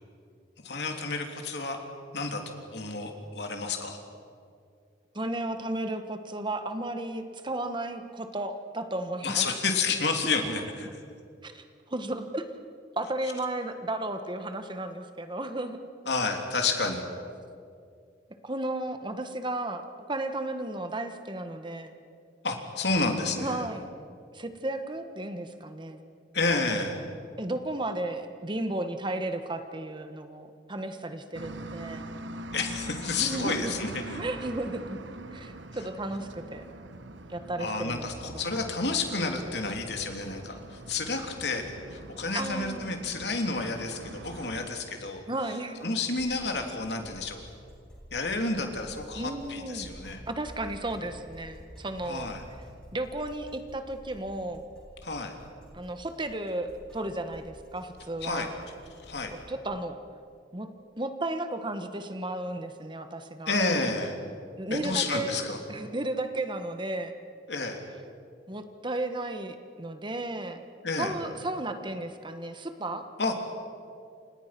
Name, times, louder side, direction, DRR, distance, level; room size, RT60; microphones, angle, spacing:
voice 1, 0.6-1.8 2.1-4.0 9.2-11.0 16.0-17.0 22.4-23.7 26.3-27.0 32.5-34.2 37.6-45.2 45.8-47.4 48.1-50.2 52.0-52.4 55.0-55.4 58.2-58.5 59.0-59.4 63.5-64.2 64.7-65.6 67.5-67.8 70.8-71.1 73.2-73.3, left 3 dB, 65° left, 3 dB, 3.4 m, -30 dB
voice 2, 5.1-9.5 11.4-12.4 13.0-15.8 18.4-21.9 23.4-23.9 24.3-26.0 27.4-32.1 33.2-33.7 34.1-35.0 35.3-36.6 37.3-38.1 38.3-38.4 42.3-42.9 45.3-45.8 49.1-49.9 50.3-52.3 52.9-54.6 55.7-58.5 59.3-60.0 60.5-60.7 61.0-63.6 64.6-67.1 68.5-70.6 71.0-73.0, right 1 dB, 25° right, 8 dB, 1.4 m, -34 dB
sound 1, 31.3-44.7, right 2 dB, 80° right, 1.3 m, -43 dB
sound 2, 45.8-59.4, equal, 5° left, 7.8 m, -50 dB
29.5 x 27.0 x 6.1 m, 2.4 s
head